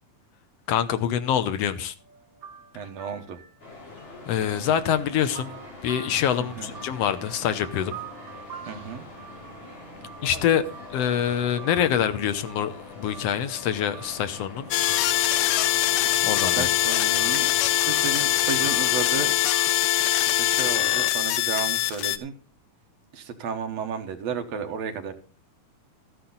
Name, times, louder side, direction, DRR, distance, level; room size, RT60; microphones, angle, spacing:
voice 1, 0.7-1.9 4.3-5.5 5.8-8.0 10.2-10.6 10.9-14.7 16.2-16.7, left 9 dB, 70° left, 11 dB, 1.6 m, -25 dB
sound 1, 2.0-19.7, right 7 dB, 35° right, 4.3 m, -46 dB
voice 2, 2.7-3.4 6.4-6.7 8.7-9.0 16.5-19.3 20.4-22.3 23.1-25.1, right 6 dB, 65° right, 6 dB, 2.1 m, -33 dB
sound 2, 3.6-19.4, left 2 dB, 40° left, 4.2 m, -43 dB
sound 3, 14.7-22.2, left 14 dB, 90° left, 2.3 m, -23 dB
13.5 x 10.0 x 3.9 m, 0.37 s
omnidirectional pair, 3.6 m